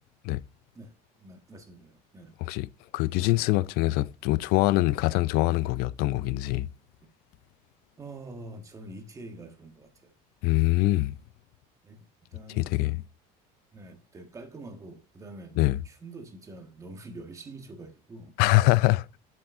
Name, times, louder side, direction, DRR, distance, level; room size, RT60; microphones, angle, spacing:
voice 1, 0.7-2.4 7.0-7.1 8.0-10.1 11.8-13.0 13.7-15.6 15.8-18.4, right 2 dB, 20° right, 1.4 m, -45 dB
voice 2, 2.9-6.7 10.4-11.2 12.6-13.0 15.6-15.8 18.4-19.0, left 19 dB, 65° left, 0.4 m, -24 dB
7.9 x 7.5 x 2.5 m
cardioid pair, 150°, 17 cm